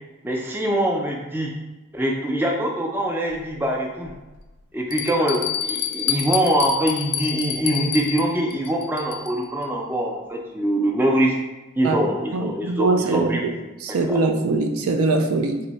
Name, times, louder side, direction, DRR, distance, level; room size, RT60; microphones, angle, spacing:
voice 1, 0.2-1.5 1.9-4.1 4.7-11.4 11.8-13.4 14.1-14.2, right 1 dB, 10° right, -1 dB, 0.3 m, -23 dB
Bell, 3.3-3.4 4.1-4.2 4.9-9.5, left 9 dB, 80° left, 0.3 m, -28 dB
voice 2, 12.3-13.5 13.8-15.6, right 3 dB, 90° right, 5 dB, 0.4 m, -22 dB
2.6 x 2.1 x 4.0 m, 1.1 s
head